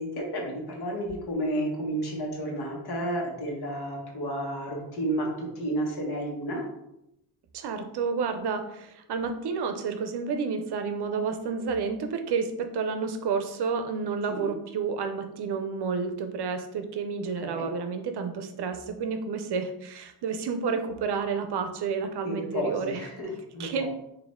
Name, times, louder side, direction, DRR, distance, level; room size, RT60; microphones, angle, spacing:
voice 1, 0.0-6.6 14.3-14.5 17.4-17.7 22.2-23.9, right 1 dB, 60° left, 0 dB, 1.3 m, -31 dB
voice 2, 7.5-23.1 23.6-23.9, right 5 dB, 65° right, 7 dB, 0.6 m, -30 dB
4.1 x 2.7 x 3.6 m, 0.83 s
cardioid pair, 100°, 44 cm